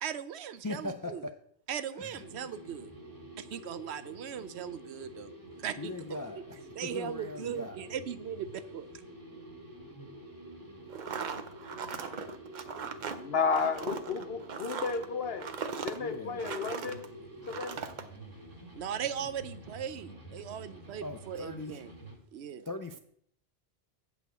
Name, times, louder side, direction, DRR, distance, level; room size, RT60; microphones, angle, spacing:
voice 1, 0.0-1.3 1.7-2.9 3.4-5.3 5.6-6.4 6.7-8.9 18.7-21.9 22.3-22.7, right 9 dB, 80° right, 13 dB, 0.9 m, -39 dB
voice 2, 0.6-1.3 2.0-2.2 5.8-6.4 6.8-7.8 16.0-16.4 21.0-21.8 22.7-23.0, left 2 dB, 30° left, 6 dB, 0.3 m, -39 dB
sound 1, 2.2-22.2, right 1 dB, 20° right, 1.9 m, -48 dB
sound 2, 10.9-17.1 17.4-18.0, right 6 dB, 50° right, 0.7 m, -39 dB
voice 3, 13.2-15.5 15.8-17.1 17.5-17.8, left 5 dB, 65° left, 9 dB, 1.0 m, -32 dB
8.3 x 4.8 x 6.7 m, 0.66 s
omnidirectional pair, 1.1 m